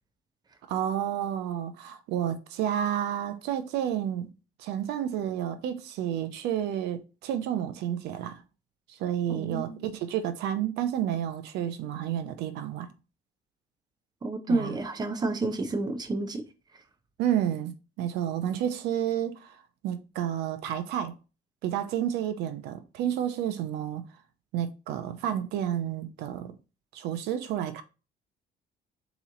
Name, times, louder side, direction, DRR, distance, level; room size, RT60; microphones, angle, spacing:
voice 1, 0.7-4.3 4.6-8.4 8.9-12.9 14.5-14.7 17.2-21.1 21.6-24.0 24.5-26.5 26.9-27.8, right 10 dB, 85° right, 0.6 m, -30 dB
voice 2, 9.3-9.8 14.2-16.4, right 2 dB, 25° right, 0.7 m, -30 dB
4.1 x 3.0 x 3.7 m
cardioid pair, 110°, 17 cm